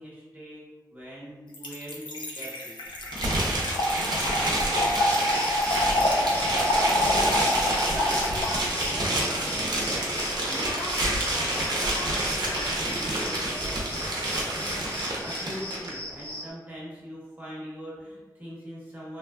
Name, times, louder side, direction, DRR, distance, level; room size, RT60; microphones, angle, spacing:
voice 1, 0.0-2.8 15.2-19.2, equal, 20° right, -7 dB, 0.9 m, -42 dB
Trickle dribble / Fill (with liquid), 1.5-8.9, left 1 dB, 90° left, 0.4 m, -27 dB
sound 1, 3.1-15.9, right 1 dB, 65° right, 0.6 m, -28 dB
voice 2, 3.8-5.5 5.9-6.8 7.1-14.5, equal, 65° left, -8 dB, 1.3 m, -41 dB
sound 2, 5.1-16.5, left 1 dB, 25° left, 0.7 m, -39 dB
2.9 x 2.1 x 2.3 m, 1.2 s
wide cardioid pair, 80°, 8 cm